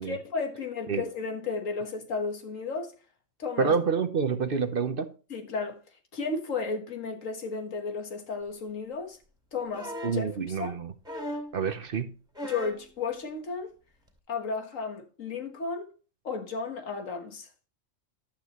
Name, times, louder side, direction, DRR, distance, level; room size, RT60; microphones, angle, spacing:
voice 1, 0.0-2.9 3.4-3.7 5.3-5.8 6.1-9.2 9.5-10.8 12.4-13.7 14.3-15.9 16.2-17.5, left 4 dB, 90° left, 1.8 m, -33 dB
voice 2, 3.6-5.1 10.0-10.9 11.5-12.1, right 5 dB, 50° right, 0.9 m, -28 dB
sound 1, 9.7-10.3 11.0-11.6 12.3-12.9 14.1-14.2, left 1 dB, 5° right, 2.4 m, -37 dB
11.5 x 8.6 x 3.0 m
omnidirectional pair, 1.3 m